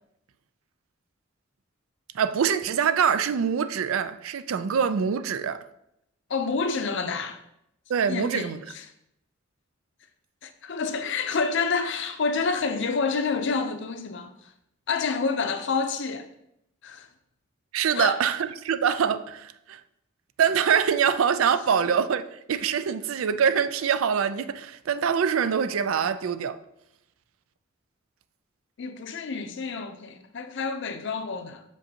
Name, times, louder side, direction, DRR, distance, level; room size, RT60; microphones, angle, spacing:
voice 1, 2.1-5.6 7.9-8.6 17.7-19.8 20.4-26.6, right 7 dB, 85° right, 0.4 m, -24 dB
voice 2, 6.3-7.4 8.1-8.8 10.4-14.3 14.9-16.3 16.8-17.1 17.9-18.2 28.8-31.6, left 4 dB, 60° left, 0.6 m, -28 dB
6.4 x 5.2 x 2.8 m
head